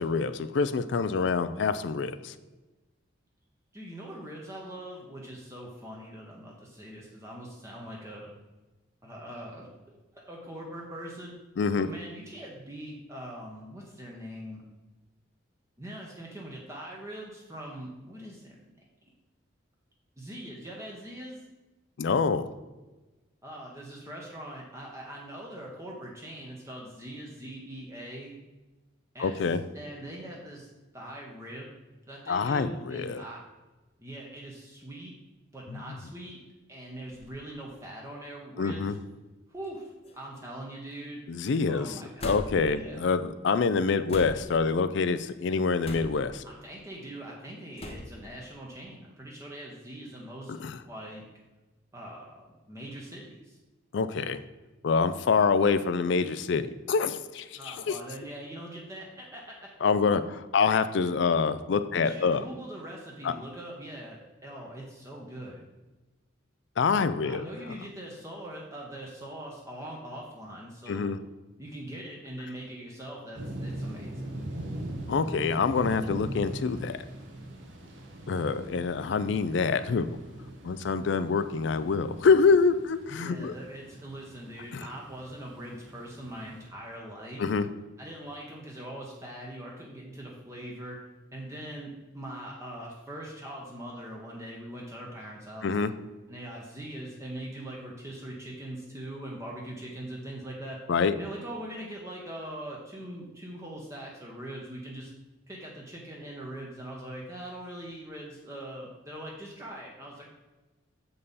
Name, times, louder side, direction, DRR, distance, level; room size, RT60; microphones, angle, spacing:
voice 1, 0.0-2.3 11.6-11.9 22.0-22.5 29.2-29.6 32.3-33.2 38.6-38.9 41.3-41.9 42.2-46.4 50.5-50.8 53.9-54.4 54.8-58.0 59.8-60.2 60.5-62.4 63.2-63.3 66.8-67.4 70.9-71.2 75.1-77.0 78.3-80.1 80.6-83.5 84.7-84.8 87.4-87.7 95.6-95.9 100.9-101.1, left 5 dB, 60° left, 12 dB, 0.4 m, -26 dB
voice 2, 3.7-8.3 9.0-11.3 11.8-14.6 15.8-18.7 20.2-21.4 23.4-28.4 29.1-30.7 30.9-31.7 32.1-33.4 34.0-35.1 35.5-36.4 36.7-39.0 39.5-41.2 41.7-43.0 46.4-50.6 50.8-51.3 51.9-53.6 57.6-59.7 60.0-60.1 61.9-65.6 67.2-71.2 71.6-74.5 83.2-87.4 88.0-91.0 91.3-95.8 96.3-100.8 101.1-105.1 105.5-110.3, right 1 dB, 15° right, -2 dB, 0.9 m, -42 dB
sound 1, 37.1-37.4 38.2-38.3 39.5-39.8 40.0-40.6 42.2-42.8 44.1-44.6 45.8-46.4 47.8-48.2, left 1 dB, 30° left, 0.7 m, -40 dB
sound 2, 73.3-86.7, right 1 dB, 65° right, 1.1 m, -41 dB
7.0 x 5.4 x 4.0 m, 1.1 s
head